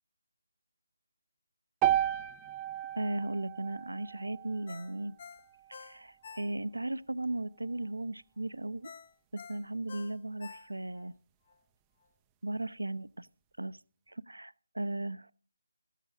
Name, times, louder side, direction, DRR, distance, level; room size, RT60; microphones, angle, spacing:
sound 1, 1.8-6.0, right 12 dB, 15° right, 0.5 m, -34 dB
voice 1, 3.0-5.2 5.7-8.9 9.3-11.1 12.4-13.3 13.6-13.8 14.1-15.3, right 2 dB, 75° right, 0.7 m, -36 dB
Ringtone, 4.7-6.9 7.3-7.4 8.8-11.1 11.5-11.6, left 5 dB, 35° left, 0.9 m, -50 dB
14.5 x 9.2 x 6.3 m
figure-of-eight pair, 155°, 0 cm